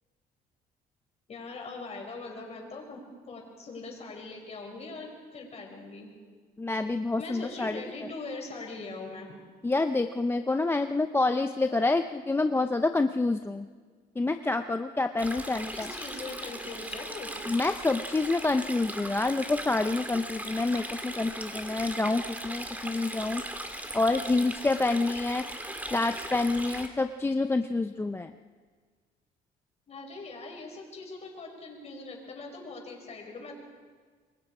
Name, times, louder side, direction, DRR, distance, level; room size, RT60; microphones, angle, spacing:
voice 1, 1.3-6.1 7.2-9.3 15.7-17.3 29.9-33.5, left 3 dB, 40° left, 1 dB, 5.9 m, -41 dB
voice 2, 6.6-7.8 9.6-13.7 14.2-15.9 17.5-23.4 23.9-25.5 25.9-28.3, left 3 dB, 15° left, 8 dB, 0.6 m, -27 dB
Stream, 15.2-26.9, right 1 dB, 10° right, 2.2 m, -38 dB
27.0 x 22.5 x 4.9 m, 1.5 s
cardioid pair, 110°, 17 cm